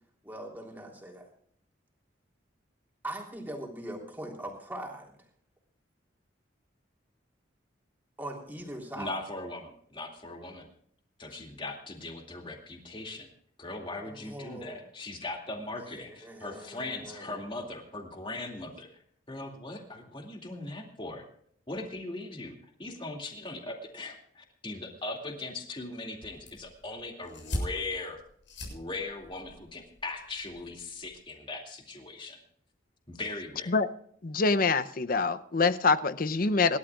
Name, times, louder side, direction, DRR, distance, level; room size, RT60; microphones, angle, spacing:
voice 1, 0.2-1.3 3.0-5.1 8.2-9.1 14.0-14.8 15.9-17.4, right 1 dB, 10° right, -1 dB, 3.4 m, -41 dB
voice 2, 8.9-10.7 11.2-13.3 13.6-18.9 19.3-21.3 21.7-28.2 28.7-32.4 33.1-33.8, left 2 dB, 25° left, 2 dB, 2.4 m, -39 dB
sound 1, 26.2-31.2, equal, 70° left, 7.1 m, -41 dB
voice 3, 34.2-36.8, left 4 dB, 45° left, 12 dB, 0.6 m, -25 dB
26.5 x 12.5 x 2.4 m, 0.63 s
head